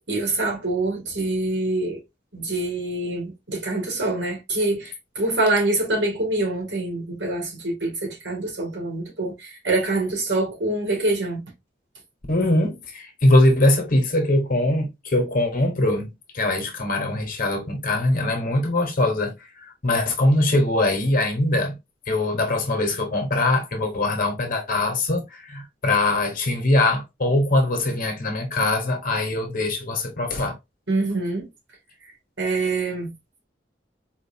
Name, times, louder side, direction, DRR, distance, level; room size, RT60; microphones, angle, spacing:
voice 1, 0.1-2.0 2.3-11.4 30.9-31.5 32.4-33.1, right 2 dB, 85° right, 2.1 m, -25 dB
voice 2, 12.3-21.8 22.1-30.5, left 1 dB, 50° left, 1.2 m, -22 dB
4.5 x 2.6 x 2.7 m
head